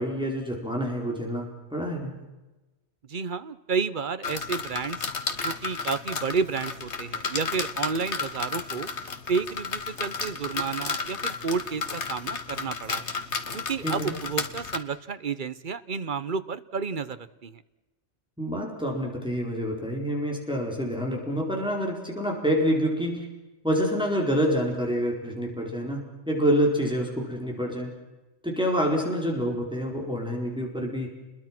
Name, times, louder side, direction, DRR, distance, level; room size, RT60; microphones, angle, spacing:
voice 1, 0.0-2.2 13.8-14.2 18.4-23.3 23.6-27.9 28.4-31.1, equal, 5° right, 0 dB, 4.4 m, -27 dB
voice 2, 3.1-5.1 5.4-8.9 9.3-13.1 13.5-17.6, right 5 dB, 45° right, 13 dB, 1.1 m, -31 dB
sound 1, 4.2-14.8, left 5 dB, 75° left, 1.8 m, -33 dB
29.5 x 22.0 x 6.0 m, 1.1 s
omnidirectional pair, 1.2 m